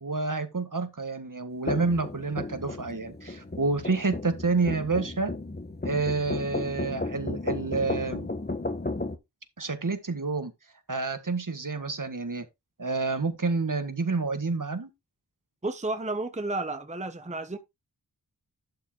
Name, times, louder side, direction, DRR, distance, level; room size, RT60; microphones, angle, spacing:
voice 1, 0.0-5.3 5.8-8.3 9.6-10.5 10.9-12.5 12.8-14.9, right 3 dB, 50° right, 1.7 m, -29 dB
sound 1, 1.7-9.2, left 2 dB, 25° left, 1.1 m, -34 dB
voice 2, 15.6-17.6, right 2 dB, 15° right, 0.9 m, -32 dB
11.5 x 4.6 x 4.5 m
wide cardioid pair, 70°, 40 cm